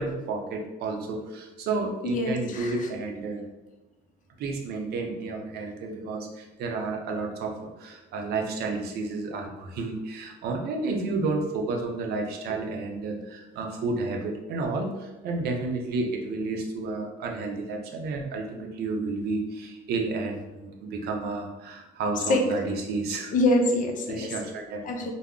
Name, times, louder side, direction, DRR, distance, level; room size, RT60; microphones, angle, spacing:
voice 1, 0.0-3.5 4.4-23.3 24.1-24.8, right 3 dB, 70° right, 2 dB, 0.5 m, -31 dB
voice 2, 2.0-2.9 22.3-22.4 23.3-24.3 24.8-25.1, left 2 dB, 50° left, 3 dB, 0.5 m, -25 dB
2.3 x 2.0 x 3.6 m, 1.1 s
cardioid pair, 110°, 17 cm